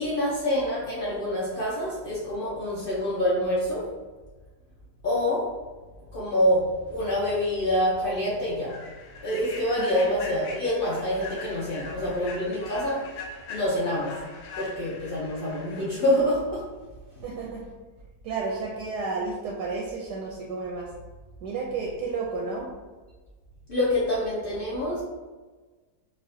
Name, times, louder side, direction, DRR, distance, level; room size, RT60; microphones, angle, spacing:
voice 1, 0.0-3.9 5.0-5.5 6.1-8.8 9.2-13.0 13.5-14.2 14.6-16.6 23.7-25.0, left 1 dB, 70° left, -8 dB, 0.5 m, -26 dB
Human voice / Train, 7.3-7.5 7.9-8.1 8.6-16.2, left 3 dB, 90° left, 1.3 m, -42 dB
voice 2, 17.2-17.6 18.2-20.9 21.4-22.7, right 4 dB, 75° right, -2 dB, 1.0 m, -32 dB
4.1 x 2.6 x 2.6 m, 1.3 s
omnidirectional pair, 1.9 m